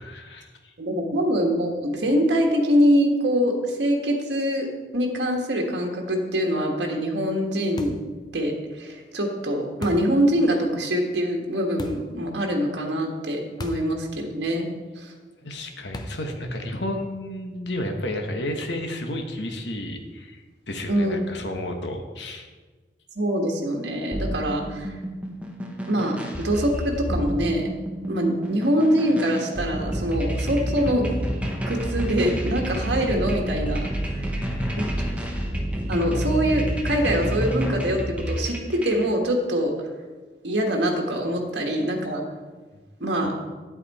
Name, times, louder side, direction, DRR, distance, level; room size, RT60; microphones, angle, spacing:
voice 1, 0.0-0.7 15.4-22.5 34.3-35.1, left 1 dB, 80° left, 4 dB, 1.2 m, -32 dB
voice 2, 0.8-4.7 4.9-8.0 8.3-14.7 15.0-15.1 20.9-21.2 23.1-24.9 25.9-27.7 28.1-31.1 31.6-34.3 35.9-39.7 40.4-42.2 43.0-43.3, equal, 80° right, 1 dB, 1.5 m, -24 dB
sound 1, 7.8-8.1 9.8-10.2 11.8-12.1 13.6-13.9 14.2-14.3 15.9-16.3, left 1 dB, 25° left, 0.7 m, -36 dB
sound 2, 24.1-39.1, equal, 10° right, 1.1 m, -29 dB
9.4 x 8.4 x 4.2 m, 1.4 s
head